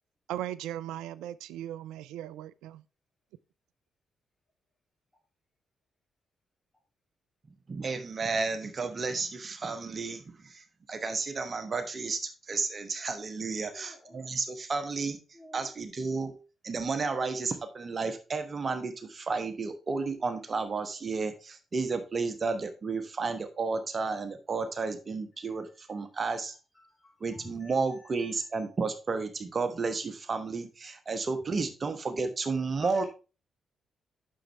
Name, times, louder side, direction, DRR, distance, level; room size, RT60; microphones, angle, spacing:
voice 1, 0.3-2.8, right 12 dB, 80° right, 0.3 m, -38 dB
voice 2, 7.7-15.2 15.5-16.3 16.6-26.5 27.2-33.0, right 4 dB, 45° right, 1.1 m, -32 dB
voice 3, 13.6-14.2 15.3-15.7 26.8-27.7 32.8-33.1, left 1 dB, 20° left, 2.7 m, -50 dB
7.6 x 6.5 x 3.3 m
hypercardioid pair, 40°, 0 cm